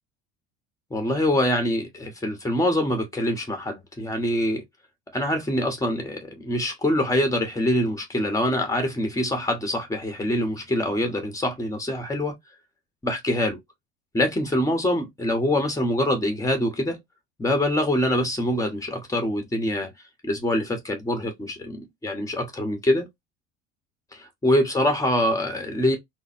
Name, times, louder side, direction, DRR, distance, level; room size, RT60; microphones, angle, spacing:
voice 1, 0.9-4.6 5.1-12.4 13.0-13.6 14.1-17.0 17.4-19.9 20.2-23.1 24.1-26.0, left 1 dB, 10° left, 1.6 m, -24 dB
3.9 x 2.1 x 4.3 m
figure-of-eight pair, 70°, 31 cm